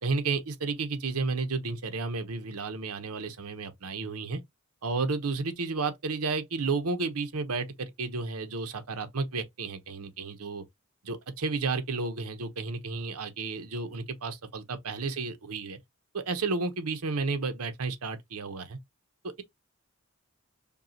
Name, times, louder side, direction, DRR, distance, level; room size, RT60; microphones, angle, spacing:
voice 1, 0.0-4.4 4.8-10.6 11.0-15.8 16.1-18.8 19.2-19.4, right 4 dB, 90° right, 0.9 m, -32 dB
5.3 x 2.3 x 2.8 m
head